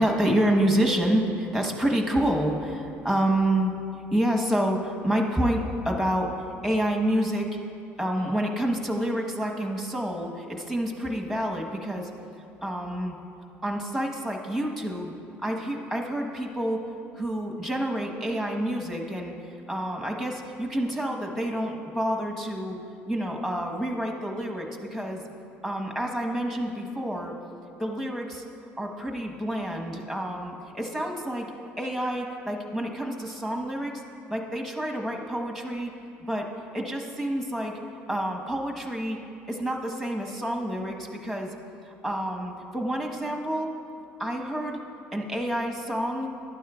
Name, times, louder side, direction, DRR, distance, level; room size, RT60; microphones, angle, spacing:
voice 1, 0.0-3.7 4.1-6.3 6.6-7.5 8.0-12.1 12.6-13.1 13.6-15.1 15.4-16.8 17.1-19.3 19.7-22.8 23.0-25.2 25.6-27.3 27.8-28.4 28.8-31.5 31.8-34.0 34.3-35.9 36.3-36.5 36.7-37.8 38.1-39.2 39.5-41.5 41.9-43.7 44.2-44.8 45.1-46.3, right 1 dB, ahead, 1 dB, 1.2 m, -28 dB
12.0 x 9.2 x 2.4 m, 2.6 s
supercardioid pair, 80°, 6 cm